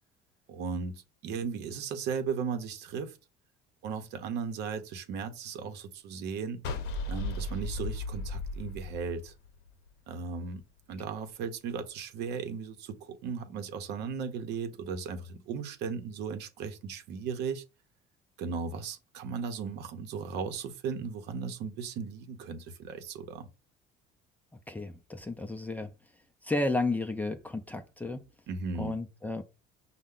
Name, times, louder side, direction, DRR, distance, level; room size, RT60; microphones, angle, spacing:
voice 1, 0.5-3.2 3.8-6.6 7.1-9.3 10.1-10.6 10.9-17.6 18.4-23.5 28.5-29.0, right 6 dB, 70° right, 0.8 m, -36 dB
sound 1, 6.6-9.9, left 2 dB, 70° left, 0.7 m, -35 dB
voice 2, 24.7-25.9 26.4-28.2 28.8-29.4, left 2 dB, 10° left, 0.4 m, -32 dB
5.4 x 2.1 x 3.7 m
cardioid pair, 120°, 18 cm